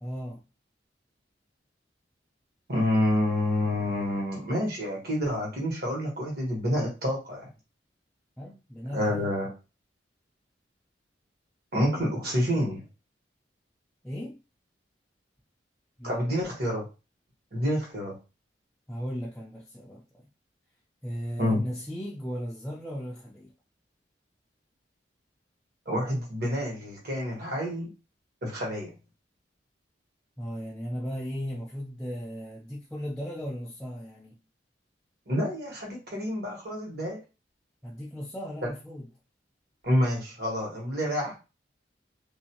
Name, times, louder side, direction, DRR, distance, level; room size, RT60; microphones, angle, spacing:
voice 1, 0.0-0.4 8.4-9.3 14.0-14.4 16.0-16.6 18.9-20.3 21.0-23.5 30.4-34.4 37.8-39.1, equal, 5° left, 0.3 m, -37 dB
voice 2, 2.7-7.4 8.9-9.5 11.7-12.8 16.0-16.8 17.5-18.1 21.4-21.6 25.9-27.9 28.4-28.9 35.3-37.2 38.6-38.7 39.8-41.3, equal, 60° right, 1.2 m, -28 dB
2.5 x 2.2 x 2.8 m
head